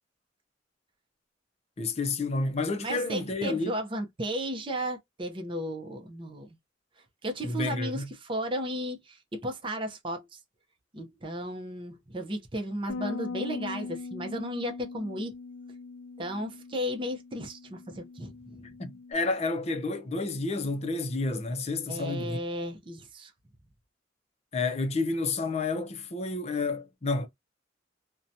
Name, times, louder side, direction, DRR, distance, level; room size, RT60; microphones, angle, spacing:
voice 1, 1.8-3.8 7.4-8.1 18.8-22.4 24.5-27.3, left 3 dB, 35° left, 0.5 m, -30 dB
voice 2, 2.8-6.6 7.2-10.4 10.9-15.3 16.2-18.7 21.9-23.3, equal, 30° right, 0.6 m, -34 dB
Bass guitar, 12.9-19.1, left 4 dB, 90° left, 0.4 m, -41 dB
2.8 x 2.2 x 2.6 m
head